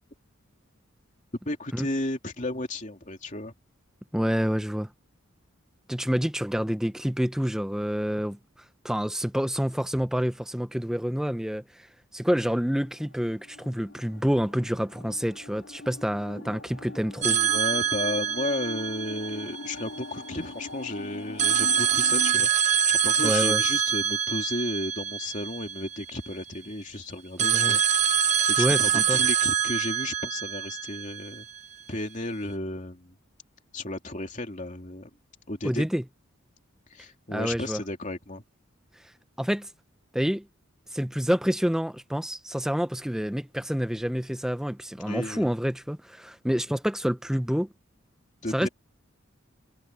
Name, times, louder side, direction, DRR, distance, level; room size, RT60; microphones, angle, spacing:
voice 1, 1.4-3.5 17.2-22.5 22.9-31.5 31.9-33.1 33.7-35.1 35.5-35.9 36.9-38.4 45.0-45.5 48.4-48.7, left 2 dB, 35° left, 3.0 m, -33 dB
voice 2, 4.1-4.9 5.9-8.4 8.8-11.9 12.1-17.4 23.2-23.6 27.4-27.8 28.6-29.2 35.6-36.0 37.3-37.8 38.9-39.0 39.4-39.7 40.1-40.4 40.9-47.7 48.5-48.7, equal, ahead, 0.5 m, -28 dB
sound 1, 12.4-22.3, left 2 dB, 70° left, 2.1 m, -42 dB
sound 2, 17.2-20.1 21.4-26.3 27.4-31.6, right 8 dB, 35° right, 1.0 m, -25 dB
head